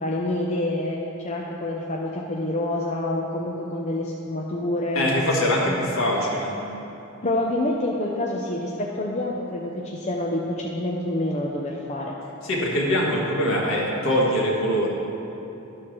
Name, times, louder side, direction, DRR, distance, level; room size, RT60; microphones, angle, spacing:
voice 1, 0.0-1.0 1.2-5.1 5.6-5.8 7.2-12.2, left 1 dB, 30° left, -2 dB, 0.6 m, -27 dB
voice 2, 5.0-6.5 12.4-14.9, equal, 65° left, -3 dB, 1.7 m, -23 dB
11.5 x 4.5 x 6.2 m, 3.0 s
head